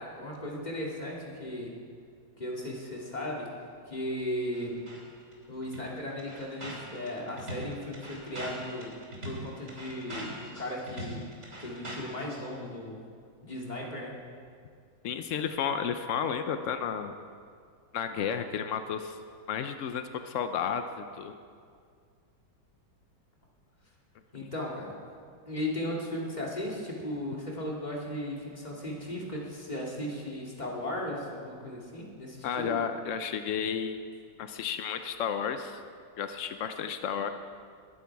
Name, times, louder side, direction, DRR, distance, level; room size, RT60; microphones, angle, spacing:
voice 1, 0.0-1.7 2.3-3.5 3.9-4.8 5.5-9.0 9.2-11.3 11.6-13.0 13.4-14.1 24.3-24.9 25.5-32.8, left 1 dB, 20° left, -3 dB, 2.6 m, -36 dB
sound 1, 4.5-5.0 5.3-5.4 5.6-12.4, right 1 dB, 35° right, 3.2 m, -41 dB
voice 2, 15.0-17.1 17.9-19.2 19.5-21.3 32.4-34.0 34.4-35.8 36.2-37.3, left 7 dB, 85° left, 8 dB, 0.6 m, -32 dB
21.0 x 11.0 x 4.7 m, 2.2 s
omnidirectional pair, 2.2 m